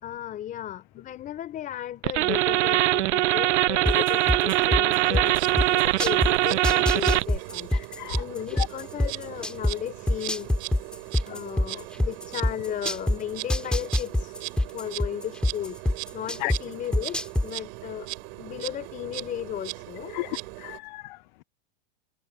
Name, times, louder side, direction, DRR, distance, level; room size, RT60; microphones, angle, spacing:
voice 1, 0.0-10.5 11.2-14.4 14.7-15.8 16.1-18.1 18.3-20.2, left 11 dB, 25° left, 4.4 m, -35 dB
sound 1, 2.0-7.4, right 16 dB, 85° right, 0.8 m, -22 dB
sound 2, 3.9-6.3 6.6-9.7 10.1-13.2 13.5-16.6 16.9-17.5, left 1 dB, 5° left, 3.3 m, -24 dB
Insect, 5.3-20.8, right 31 dB, 45° right, 6.1 m, -39 dB
voice 2, 7.7-8.2 8.6-8.7 16.4-16.5 20.1-21.4, left 21 dB, 45° left, 0.5 m, -34 dB
supercardioid pair, 160°, 34 cm